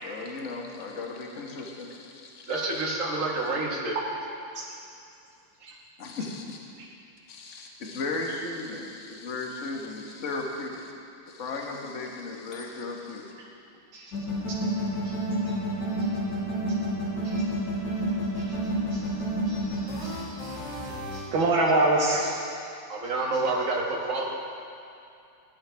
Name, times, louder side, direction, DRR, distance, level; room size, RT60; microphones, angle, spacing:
voice 1, 0.0-2.6 6.0-6.6 7.3-10.9 11.3-13.3, left 3 dB, 40° left, 0 dB, 1.5 m, -36 dB
voice 2, 2.5-4.0 4.6-4.7 5.6-5.8 22.9-24.2, right 2 dB, 45° right, -2 dB, 1.9 m, -28 dB
sound 1, 14.1-21.2, equal, 60° left, 3.9 m, -30 dB
voice 3, 19.5-20.5 21.1-22.4, right 2 dB, 80° right, -3 dB, 2.0 m, -26 dB
17.5 x 12.5 x 3.4 m, 2.5 s
omnidirectional pair, 2.1 m